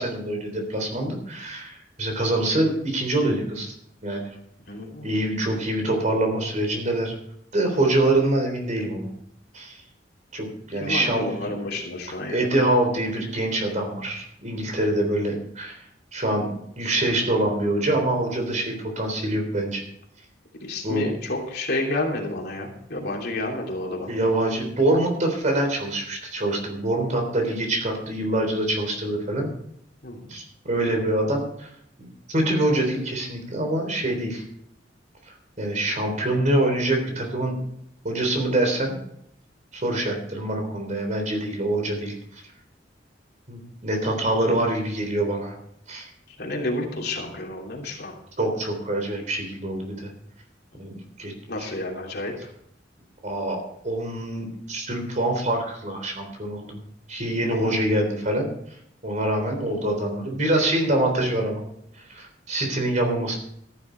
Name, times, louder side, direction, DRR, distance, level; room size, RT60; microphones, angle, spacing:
voice 1, 0.0-3.7 4.0-4.3 5.0-7.1 7.5-9.1 9.5-9.8 10.3-11.5 12.3-15.8 16.1-16.5 16.8-19.8 20.8-21.1 24.1-29.5 30.3-31.7 32.0-34.4 35.6-37.5 38.0-39.0 39.7-42.1 43.5-45.6 45.9-46.1 48.4-50.1 50.8-51.3 51.6-51.7 53.2-56.8 57.1-58.5 59.0-61.6 62.1-63.4, right 1 dB, 40° right, 3 dB, 3.6 m, -25 dB
voice 2, 4.7-5.2 10.8-12.4 20.6-24.1 30.0-30.3 46.4-48.1 51.5-52.5 57.7-57.8, left 2 dB, 60° left, 0 dB, 3.1 m, -30 dB
14.0 x 10.5 x 4.6 m, 0.72 s
head